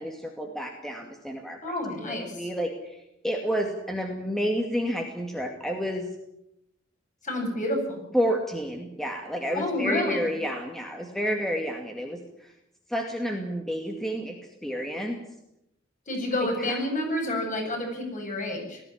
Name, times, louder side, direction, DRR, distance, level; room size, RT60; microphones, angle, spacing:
voice 1, 0.0-1.7 2.0-6.1 8.1-12.5 12.9-14.4 14.6-15.2 16.6-16.7, equal, ahead, 2 dB, 2.3 m, -30 dB
voice 2, 1.6-2.5 7.2-8.0 9.5-10.3 16.1-18.8, left 1 dB, 40° left, 1 dB, 7.7 m, -29 dB
19.5 x 15.0 x 10.0 m, 0.83 s
head